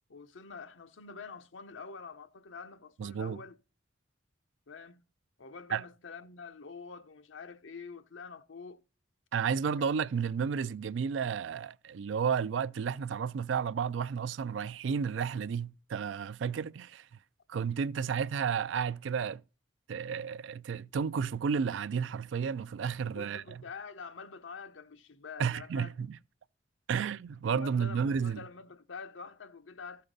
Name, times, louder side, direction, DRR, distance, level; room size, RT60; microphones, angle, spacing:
voice 1, 0.1-3.6 4.7-5.0 5.4-8.8 9.8-9.9 23.1-25.9 27.6-30.0, left 5 dB, 80° left, 0.7 m, -46 dB
voice 2, 3.0-3.4 5.7-5.8 9.3-17.1 17.5-19.4 19.9-23.6 25.4-26.2 26.9-28.4, right 6 dB, 70° right, 0.4 m, -32 dB
13.5 x 6.5 x 3.9 m
head